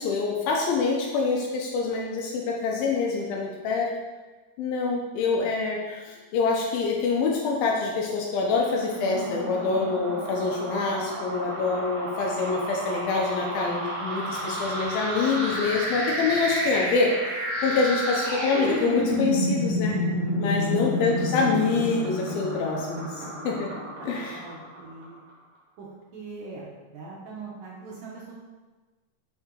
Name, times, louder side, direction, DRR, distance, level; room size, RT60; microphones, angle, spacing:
voice 1, 0.0-3.9 4.6-20.0 20.4-23.7 24.0-24.4, left 4 dB, 80° left, -1 dB, 2.1 m, -26 dB
sound 1, 8.7-25.0, equal, 45° right, 2.3 m, -30 dB
voice 2, 14.3-14.6 20.6-21.3 24.0-25.2 25.8-28.4, right 3 dB, 75° right, -4 dB, 2.0 m, -42 dB
6.0 x 4.5 x 3.6 m, 1.2 s
omnidirectional pair, 4.9 m